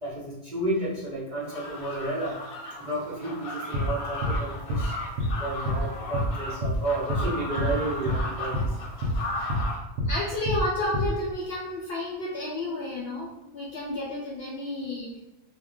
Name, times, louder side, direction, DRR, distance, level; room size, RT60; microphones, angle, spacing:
voice 1, 0.0-2.4 2.8-5.0 5.4-8.8, right 2 dB, 40° right, -8 dB, 0.6 m, -31 dB
sound 1, 1.4-9.8, left 2 dB, 90° left, 1.1 m, -36 dB
sound 2, 3.7-3.9 4.2-4.4 4.7-4.9 5.2-5.3 5.6-5.8 6.1-6.3 6.6-6.8 7.1-7.3 7.6-7.7 8.1-8.2 8.5-8.7 9.0-9.2 9.5-9.7 10.0-10.1 10.5-10.6 10.9-11.1, equal, 70° right, 0.9 m, -26 dB
voice 2, 10.0-15.2, left 1 dB, 65° left, -5 dB, 0.6 m, -31 dB
2.3 x 2.2 x 3.6 m, 0.97 s
omnidirectional pair, 1.5 m